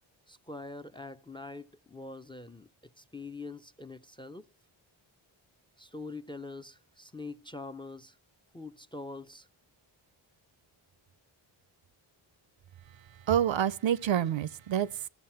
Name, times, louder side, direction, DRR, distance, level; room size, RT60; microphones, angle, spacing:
voice 1, 0.3-2.7 3.0-4.5 5.8-8.2 8.5-9.5, left 3 dB, 10° left, 0.4 m, -44 dB
voice 2, 12.9-15.1, right 10 dB, 65° right, 0.6 m, -28 dB
13.5 x 7.1 x 5.7 m
cardioid pair, 75°, 50 cm